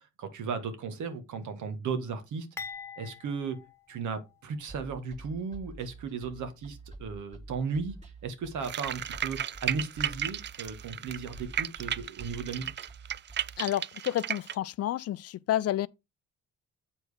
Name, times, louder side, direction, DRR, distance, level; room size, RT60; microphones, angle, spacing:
voice 1, 0.0-2.5 3.0-3.6 3.9-7.9 8.2-12.7, right 5 dB, 75° right, 1.6 m, -35 dB
sound 1, 2.6-4.7 5.1-5.2 6.1-6.3, left 5 dB, 10° left, 1.3 m, -45 dB
sound 2, 4.7-13.6, right 2 dB, 20° right, 2.2 m, -47 dB
sound 3, 8.6-14.5, right 10 dB, 40° right, 0.4 m, -34 dB
voice 2, 13.6-15.9, left 12 dB, 55° left, 0.5 m, -30 dB
7.7 x 4.5 x 5.0 m
cardioid pair, 90°, 30 cm